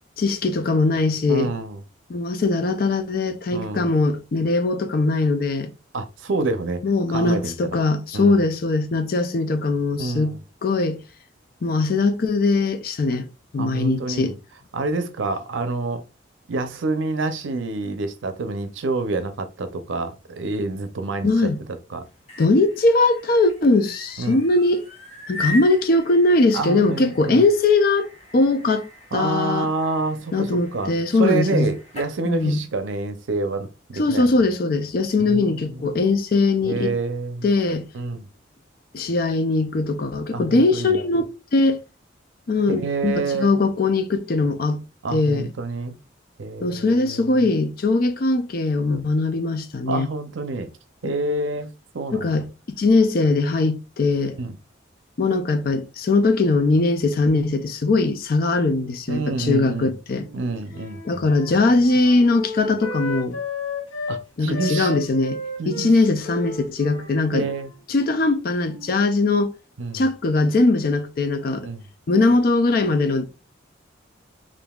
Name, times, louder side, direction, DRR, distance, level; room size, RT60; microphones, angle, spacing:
voice 1, 0.2-1.5 2.1-5.7 6.8-10.4 10.6-11.0 11.6-13.3 13.5-14.3 21.2-21.6 22.4-24.8 25.3-28.9 29.1-29.7 30.3-31.7 32.2-32.6 33.9-36.9 37.4-37.8 38.9-41.8 42.5-44.8 45.1-45.5 46.6-50.1 52.1-52.5 52.8-54.3 55.2-60.3 61.1-63.4 64.4-65.4 65.7-67.5 67.9-69.5 69.9-71.7 72.1-73.3, left 3 dB, 50° left, 0.4 m, -20 dB
voice 2, 1.3-1.8 3.5-3.9 5.9-6.8 7.1-7.6 8.1-8.4 10.0-10.4 13.6-14.4 14.7-16.0 16.5-21.5 21.9-22.0 24.2-24.4 26.5-27.5 29.1-30.9 31.2-34.3 35.2-36.0 36.6-37.5 37.9-38.3 40.3-41.0 42.7-43.6 45.0-46.0 46.4-47.5 49.9-50.7 51.0-51.7 51.9-52.3 54.4-54.6 59.1-59.9 60.3-61.3 64.1-65.0 65.6-65.9 67.3-67.7 69.8-70.0 71.6-71.8, right 3 dB, 75° right, 0.5 m, -27 dB
sound 1, 22.0-32.2, left 2 dB, 30° left, 0.8 m, -39 dB
Wind instrument woodwind instrument, 60.2-64.2 64.5-69.0, left 2 dB, 75° left, 1.1 m, -33 dB
5.2 x 2.6 x 2.3 m
head